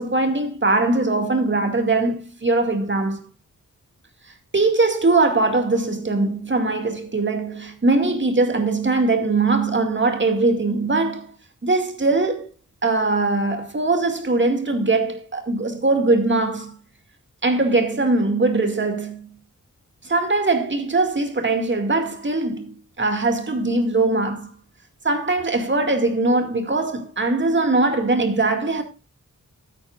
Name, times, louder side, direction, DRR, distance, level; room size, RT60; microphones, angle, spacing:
voice 1, 0.0-3.2 4.5-11.3 11.6-12.5 12.8-16.7 17.4-19.2 20.0-24.5 25.0-28.8, right 3 dB, 35° right, 2.2 m, -21 dB
15.5 x 8.8 x 2.5 m
wide cardioid pair, 105°, 32 cm